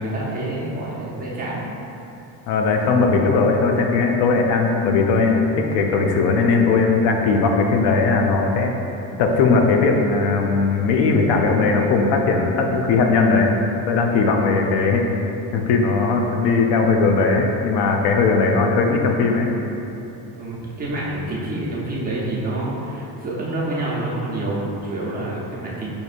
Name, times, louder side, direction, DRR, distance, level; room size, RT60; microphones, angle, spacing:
voice 1, 0.0-1.6 20.4-25.9, right 1 dB, 20° right, -7 dB, 0.7 m, -27 dB
voice 2, 2.5-8.7 9.2-13.6 13.9-15.0 15.5-19.5, left 4 dB, 90° left, 2 dB, 0.6 m, -18 dB
4.6 x 2.7 x 2.5 m, 3.0 s
cardioid pair, 125°, 41 cm